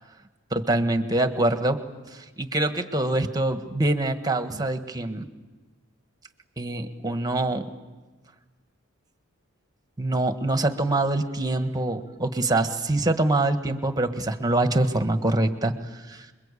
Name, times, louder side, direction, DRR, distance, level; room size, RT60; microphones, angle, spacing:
voice 1, 0.5-1.8 2.1-5.3 6.6-7.6 10.0-16.3, right 2 dB, 20° right, 8 dB, 1.6 m, -25 dB
28.0 x 22.5 x 8.5 m, 1.2 s
head